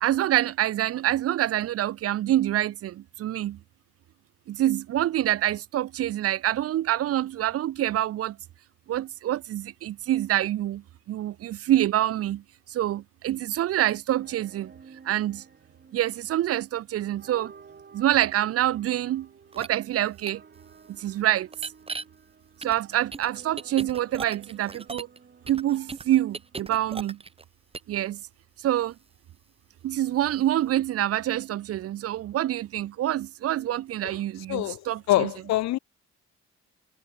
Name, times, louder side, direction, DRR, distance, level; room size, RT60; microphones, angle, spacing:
voice 1, 0.0-3.6 4.5-8.4 8.9-12.4 12.7-14.7 15.0-15.4 15.9-17.5 17.9-19.3 19.5-20.4 20.9-21.5 22.6-25.1 25.5-27.2 27.9-28.2 28.6-28.9 29.8-35.3, right 13 dB, 50° right, 0.5 m, -26 dB
sound 1, 14.1-27.0, right 5 dB, 35° right, 2.3 m, -53 dB
sound 2, 19.5-19.7 20.3-20.4 21.5-22.0 22.6-25.2 25.5-27.4 27.7-27.9, right 4 dB, 20° right, 1.0 m, -37 dB
voice 2, 34.5-34.8 35.1-35.8, left 15 dB, 65° left, 0.5 m, -24 dB
cardioid pair, 90°, 30 cm